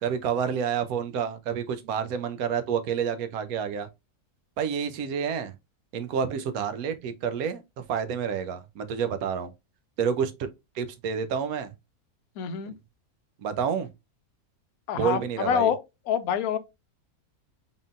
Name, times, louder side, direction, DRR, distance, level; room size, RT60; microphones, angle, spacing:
voice 1, 0.0-3.9 4.6-5.5 5.9-9.5 10.0-10.5 10.7-11.7 13.4-13.9 14.9-15.7, right 7 dB, 75° right, 1.1 m, -29 dB
voice 2, 12.4-12.7 14.9-15.8 16.1-16.6, left 8 dB, 75° left, 1.0 m, -26 dB
3.9 x 3.7 x 2.4 m
omnidirectional pair, 1.6 m